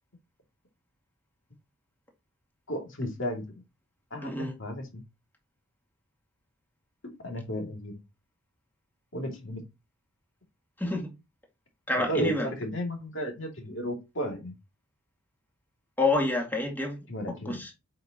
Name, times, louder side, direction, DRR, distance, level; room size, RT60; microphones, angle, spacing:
voice 1, 2.7-3.5 4.1-5.0 7.0-8.0 9.1-9.6 12.0-14.5 17.1-17.6, equal, 55° left, 2.6 m, -34 dB
voice 2, 4.2-4.5 10.8-11.1 11.9-12.5 16.0-17.0 17.5-17.7, left 2 dB, 10° left, 2.1 m, -28 dB
7.9 x 5.3 x 3.0 m
head